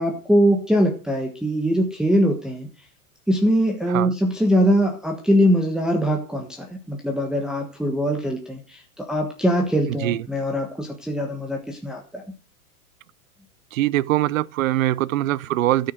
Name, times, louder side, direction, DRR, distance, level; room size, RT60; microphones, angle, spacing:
voice 1, 0.0-2.7 3.3-12.2, equal, ahead, 1.4 m, -22 dB
voice 2, 13.7-15.9, right 15 dB, 65° right, 0.7 m, -22 dB
13.0 x 6.6 x 7.9 m
hypercardioid pair, 125°, 44 cm